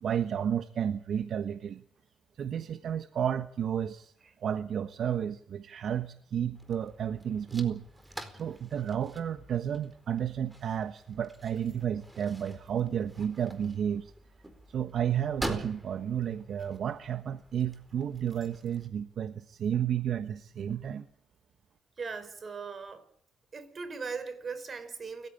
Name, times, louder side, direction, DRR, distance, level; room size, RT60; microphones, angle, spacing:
voice 1, 0.0-1.8 2.4-4.1 4.4-7.8 8.3-14.1 14.7-21.0, right 9 dB, 60° right, 1.3 m, -32 dB
sound 1, 6.6-18.9, right 1 dB, 10° right, 4.4 m, -45 dB
voice 2, 22.0-23.0 23.5-25.3, right 5 dB, 40° right, 4.7 m, -39 dB
29.0 x 15.5 x 8.8 m
cardioid pair, 90°, 0 cm